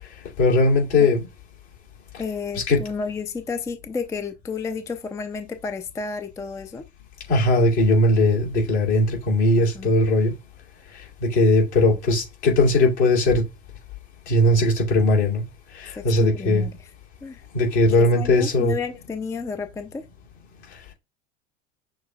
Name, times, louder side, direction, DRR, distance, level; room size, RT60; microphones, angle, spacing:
voice 1, 0.4-1.2 2.5-2.8 7.3-10.3 11.2-13.4 14.3-15.4 15.7-16.6 17.5-18.7, left 2 dB, 70° left, 2.5 m, -19 dB
voice 2, 2.2-6.8 9.7-9.9 16.0-16.8 17.2-17.4 17.8-20.0, left 5 dB, 10° left, 0.4 m, -31 dB
6.5 x 3.1 x 2.3 m
figure-of-eight pair, 70°, 35 cm